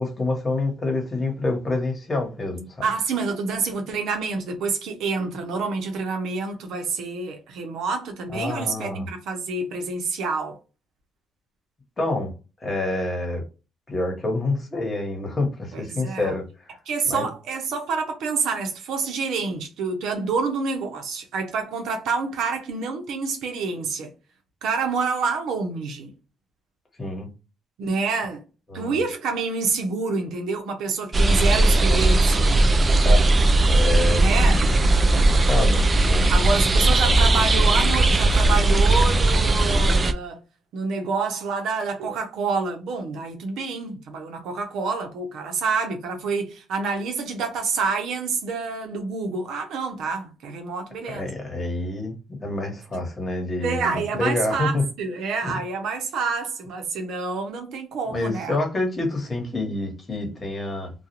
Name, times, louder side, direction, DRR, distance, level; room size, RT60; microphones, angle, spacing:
voice 1, 0.0-2.9 8.3-9.1 12.0-12.3 12.6-13.4 13.9-16.8 17.1-17.3 27.0-27.3 28.7-29.0 32.8-34.3 35.1-36.3 51.0-52.1 52.4-54.8 55.4-55.6 58.1-60.9, left 2 dB, 30° left, 1.2 m, -27 dB
voice 2, 2.8-10.6 15.7-16.4 16.9-24.1 24.6-26.1 27.8-28.4 28.7-32.6 34.2-34.8 36.3-40.4 40.7-51.3 53.6-58.6, right 4 dB, 80° right, 0.8 m, -27 dB
Harzmountain stream, 31.1-40.1, right 2 dB, 30° right, 0.3 m, -18 dB
2.4 x 2.3 x 2.8 m
cardioid pair, 90°, 0 cm